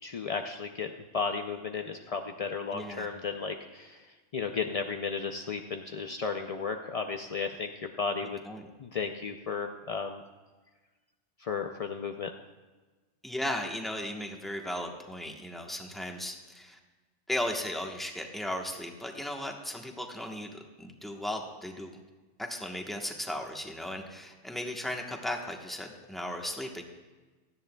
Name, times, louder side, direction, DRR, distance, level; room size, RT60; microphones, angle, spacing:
voice 1, 0.0-4.0 4.3-8.4 8.8-10.2 11.4-12.3, left 5 dB, 65° left, 5 dB, 0.3 m, -34 dB
voice 2, 2.7-3.1 8.5-8.7 13.2-16.8 17.3-22.0 22.4-26.8, left 1 dB, ahead, 2 dB, 1.0 m, -36 dB
17.5 x 13.0 x 2.2 m, 1.3 s
omnidirectional pair, 1.3 m